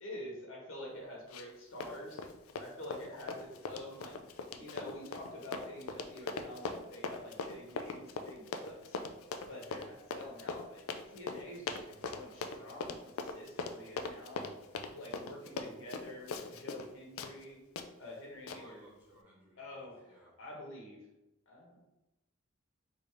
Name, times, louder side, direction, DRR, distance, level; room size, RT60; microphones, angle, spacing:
voice 1, 0.0-2.2 2.6-4.1 4.6-9.0 9.5-14.5 14.9-17.6 18.0-18.8 19.6-21.0 21.5-21.8, left 1 dB, 70° left, -2 dB, 1.2 m, -47 dB
Run, 1.3-1.6 1.8-16.9 17.2-17.3 17.8-17.9 18.5-18.6, left 4 dB, 85° left, 0.4 m, -40 dB
voice 2, 9.4-9.9 10.2-10.6 18.5-20.3, equal, 10° right, -7 dB, 1.2 m, -61 dB
3.4 x 2.7 x 4.6 m, 0.94 s
head